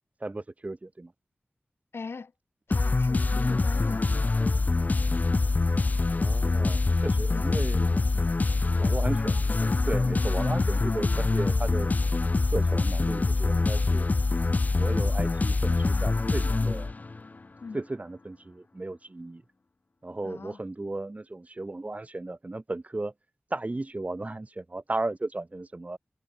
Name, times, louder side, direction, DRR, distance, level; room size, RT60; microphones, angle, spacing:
voice 1, 0.2-1.1 6.1-8.0 8.2-8.3 8.8-9.4 9.9-11.9 12.5-14.1 14.8-16.9 17.7-19.4 20.0-23.1 23.5-26.0, right 2 dB, 35° right, 1.0 m, -35 dB
voice 2, 1.9-2.3 2.7-4.1 7.3-8.3 10.0-10.2 17.6-17.8 20.2-20.6, left 4 dB, 80° left, 2.1 m, -41 dB
sound 1, 2.7-17.3, left 3 dB, 40° left, 0.4 m, -25 dB
cardioid pair, 45°, 4 cm